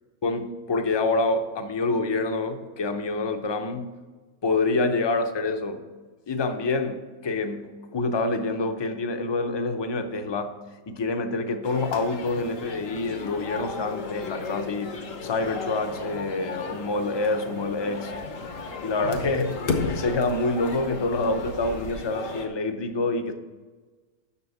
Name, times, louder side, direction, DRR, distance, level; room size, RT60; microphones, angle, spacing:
voice 1, 0.2-3.9 4.4-5.8 6.3-10.6 10.9-18.1 18.8-23.3, left 3 dB, 35° left, 7 dB, 0.4 m, -27 dB
sound 1, 11.6-22.5, left 4 dB, 80° left, 1.5 m, -34 dB
6.9 x 6.2 x 7.0 m, 1.3 s
omnidirectional pair, 1.3 m